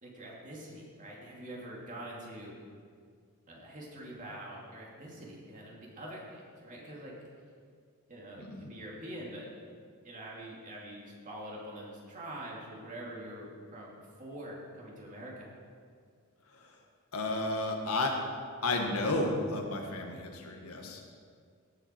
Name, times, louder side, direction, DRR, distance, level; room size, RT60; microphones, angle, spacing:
voice 1, 0.0-2.6 3.5-7.1 8.1-9.5 10.0-13.9 14.2-15.6, right 1 dB, 35° right, -4 dB, 2.7 m, -45 dB
voice 2, 8.4-8.7 16.5-16.7 17.1-18.1 18.6-21.1, left 2 dB, 90° left, 2 dB, 1.7 m, -32 dB
17.5 x 8.1 x 4.6 m, 2.1 s
head